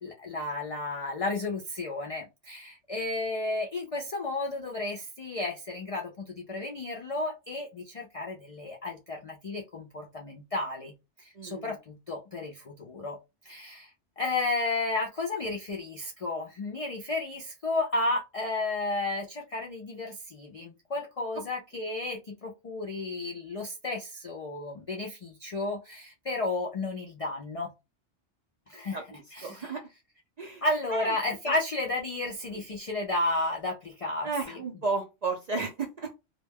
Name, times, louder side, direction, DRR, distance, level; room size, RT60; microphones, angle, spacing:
voice 1, 0.0-10.9 11.2-13.2 13.4-27.7 28.7-29.0 29.3-29.7 30.6-34.3, left 2 dB, 65° left, 1 dB, 0.3 m, -32 dB
voice 2, 11.3-11.8 28.9-29.8 30.4-30.6 30.9-31.1 31.5-31.6 32.5-32.6 34.2-36.1, right 4 dB, 55° right, 2 dB, 0.4 m, -33 dB
2.2 x 2.2 x 3.3 m, 0.25 s
omnidirectional pair, 1.2 m